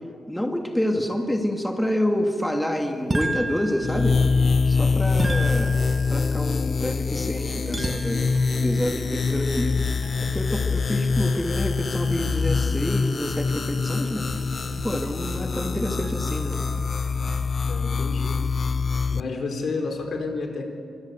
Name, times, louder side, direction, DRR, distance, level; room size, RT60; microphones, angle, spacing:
voice 1, 0.3-4.2 4.7-5.8 6.1-8.2 8.6-16.6, equal, 5° left, 3 dB, 2.3 m, -28 dB
sound 1, 3.1-4.4 5.2-6.4 7.7-8.5, right 2 dB, 20° right, 1.8 m, -30 dB
sound 2, 3.8-19.2, left 4 dB, 45° left, 0.6 m, -24 dB
sound 3, 7.3-17.6, right 5 dB, 75° right, 1.9 m, -42 dB
voice 2, 17.6-18.4 19.1-20.7, left 3 dB, 60° left, 4 dB, 3.9 m, -30 dB
25.0 x 23.5 x 8.0 m, 2.4 s
cardioid pair, 100°, 0 cm